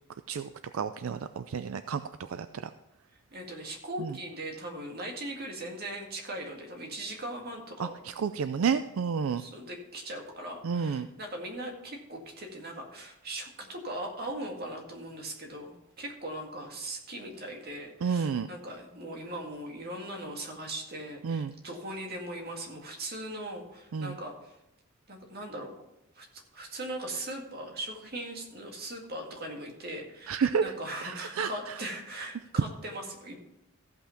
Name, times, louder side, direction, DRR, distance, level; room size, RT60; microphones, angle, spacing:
voice 1, 0.3-2.7 4.0-4.2 7.8-9.4 10.6-11.1 18.0-18.5 21.2-21.5 23.9-24.2 30.3-30.7 31.0-31.8, right 6 dB, 75° right, 11 dB, 0.4 m, -31 dB
voice 2, 3.3-7.9 9.4-24.5 25.1-25.7 26.2-33.5, right 1 dB, 45° right, 1 dB, 2.1 m, -39 dB
14.5 x 5.7 x 5.8 m, 0.87 s
head